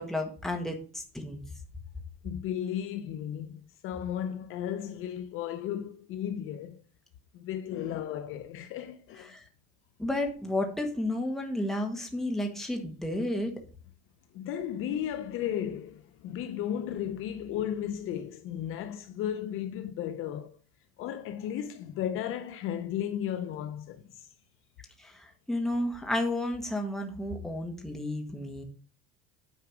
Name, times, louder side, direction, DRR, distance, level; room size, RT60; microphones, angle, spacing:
voice 1, 0.0-1.4 9.3-9.4 10.0-13.5 25.0-28.6, left 1 dB, ahead, 1.5 m, -32 dB
voice 2, 2.2-6.8 7.3-9.4 14.3-20.6 21.0-24.3, left 10 dB, 45° left, 0.7 m, -35 dB
9.3 x 4.8 x 6.1 m
cardioid pair, 160°, 30 cm